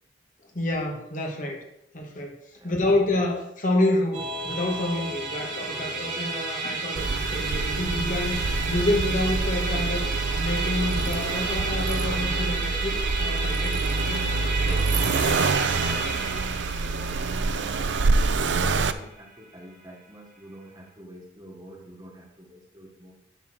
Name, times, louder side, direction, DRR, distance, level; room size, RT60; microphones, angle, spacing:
voice 1, 0.5-1.6 1.9-2.4 2.6-10.1 10.3-13.8 14.1-14.3 14.6-15.0, left 1 dB, 45° left, 1 dB, 1.8 m, -28 dB
voice 2, 2.5-2.9 5.2-6.0 15.7-23.2, right 1 dB, 20° right, 0 dB, 1.6 m, -48 dB
Musical instrument, 4.1-19.6, right 3 dB, 45° right, 2.1 m, -32 dB
Accelerating revving vroom, 7.0-18.9, right 3 dB, 70° right, 0.6 m, -26 dB
8.1 x 7.4 x 6.2 m, 0.83 s
head